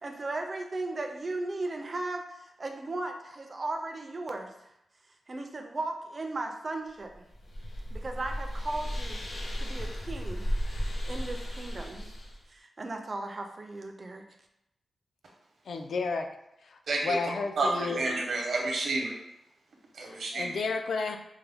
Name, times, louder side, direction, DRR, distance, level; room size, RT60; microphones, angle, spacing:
voice 1, 0.0-4.7 5.3-7.3 7.9-12.1 12.5-14.2, right 2 dB, 30° right, 4 dB, 0.4 m, -37 dB
sound 1, 7.1-12.4, equal, 90° left, 1.0 m, -34 dB
voice 2, 15.7-16.3 16.7-18.0 20.1-21.2, left 4 dB, 65° left, 5 dB, 0.4 m, -32 dB
voice 3, 16.9-17.2 17.6-19.2 19.9-20.5, right 2 dB, 65° right, 0 dB, 0.8 m, -29 dB
4.6 x 2.1 x 3.4 m, 0.83 s
wide cardioid pair, 180°, 0 cm